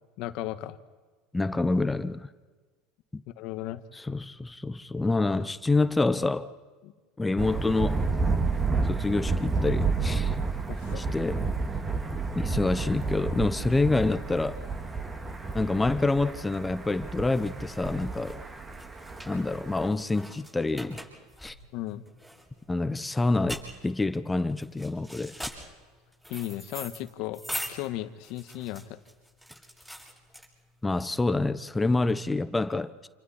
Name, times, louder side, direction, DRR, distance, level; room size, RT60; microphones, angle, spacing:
voice 1, 0.2-0.8 3.4-3.8 6.8-6.9 10.7-11.1 21.7-22.0 26.3-27.4 27.7-29.0, left 14 dB, 65° left, 1.5 m, -35 dB
voice 2, 1.3-2.3 3.1-3.2 3.9-6.5 7.2-8.1 8.8-10.4 11.0-11.5 12.3-14.6 15.5-18.4 19.3-21.0 21.4-21.5 22.7-25.4 30.8-33.1, left 3 dB, 10° left, 1.0 m, -27 dB
Thunder, 7.4-19.9, right 4 dB, 20° right, 2.3 m, -30 dB
sound 1, 17.3-30.9, equal, 5° right, 7.7 m, -42 dB
29.0 x 28.5 x 4.4 m
supercardioid pair, 110°, 0 cm